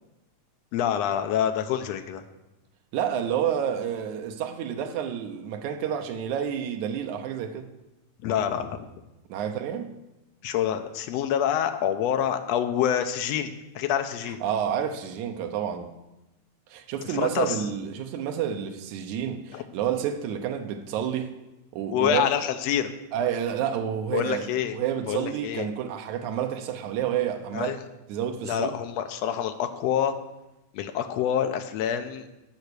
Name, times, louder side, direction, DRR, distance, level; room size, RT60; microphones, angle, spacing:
voice 1, 0.7-2.2 8.2-8.9 10.4-14.4 17.2-17.6 19.5-19.6 21.9-22.9 24.1-24.8 25.1-25.7 27.5-27.8 28.4-30.1 30.7-32.3, left 9 dB, 70° left, 1.7 m, -26 dB
voice 2, 2.9-7.7 9.3-9.9 14.4-15.9 16.7-21.3 21.7-22.3 23.1-27.8 28.1-28.7, right 9 dB, 75° right, 2.3 m, -29 dB
13.5 x 5.8 x 6.6 m
omnidirectional pair, 3.5 m